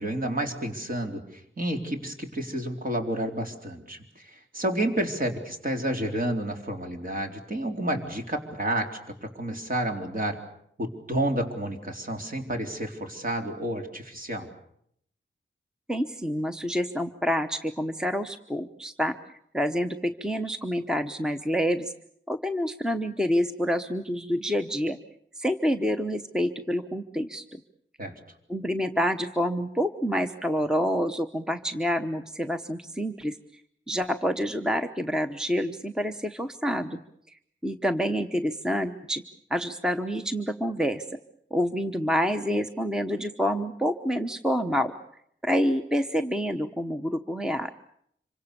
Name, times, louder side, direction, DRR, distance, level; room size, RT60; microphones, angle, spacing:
voice 1, 0.0-10.4 10.8-14.5 28.0-28.1, right 1 dB, 45° right, 3 dB, 4.0 m, -30 dB
voice 2, 15.9-19.1 19.5-21.9 22.3-25.0 25.4-27.6 28.5-33.6 33.9-37.0 37.6-39.2 39.5-41.1 41.5-44.9 45.4-47.7, equal, 5° right, 8 dB, 1.0 m, -27 dB
26.5 x 24.5 x 6.9 m, 0.70 s
wide cardioid pair, 100°, 20 cm